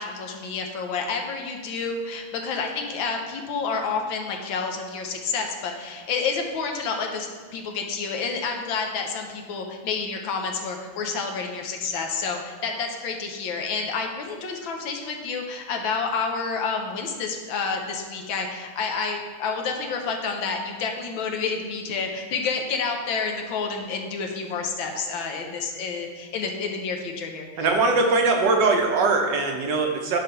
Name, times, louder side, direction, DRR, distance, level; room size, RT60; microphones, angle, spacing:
voice 1, 0.0-27.7, left 5 dB, 75° left, 2 dB, 1.6 m, -29 dB
voice 2, 27.6-30.2, right 3 dB, 70° right, 3 dB, 1.3 m, -21 dB
9.4 x 3.4 x 5.7 m, 1.5 s
omnidirectional pair, 2.2 m